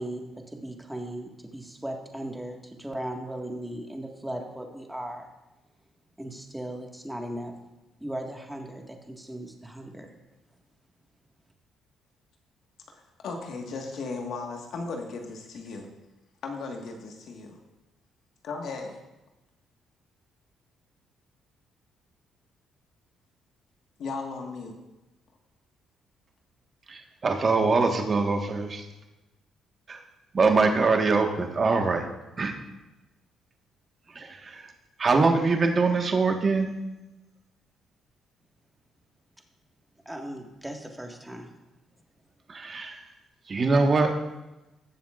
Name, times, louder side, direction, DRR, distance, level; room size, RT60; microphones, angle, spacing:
voice 1, 0.0-5.3 6.2-7.5 8.0-10.1 40.1-41.5, right 1 dB, 5° right, 2 dB, 1.7 m, -37 dB
voice 2, 12.9-15.9 16.4-17.6 18.4-19.0 24.0-24.7, left 4 dB, 70° left, 2 dB, 1.6 m, -36 dB
voice 3, 26.9-28.8 29.9-30.0 30.3-32.1 32.4-32.5 34.1-34.7 35.0-36.7 42.5-43.0 43.5-44.1, right 4 dB, 40° right, 3 dB, 1.5 m, -23 dB
18.5 x 7.3 x 2.5 m, 1.0 s
supercardioid pair, 65°, 0 cm